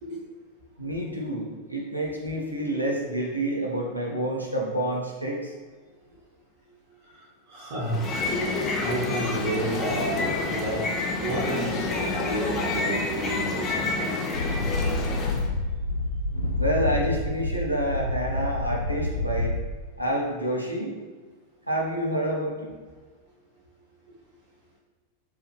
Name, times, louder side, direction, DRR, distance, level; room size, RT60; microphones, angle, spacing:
voice 1, 0.8-5.5 16.6-19.5 20.0-21.0 21.7-22.7, right 1 dB, 90° right, -2 dB, 0.7 m, -28 dB
voice 2, 7.0-8.2 8.8-10.9 11.2-14.2, right 2 dB, 55° right, -8 dB, 0.9 m, -31 dB
sound 1, 7.8-15.5, left 3 dB, 25° left, 0.6 m, -28 dB
sound 2, 14.3-19.6, left 2 dB, 75° left, 0.4 m, -28 dB
4.7 x 2.3 x 3.0 m, 1.4 s
figure-of-eight pair, 90°, 0 cm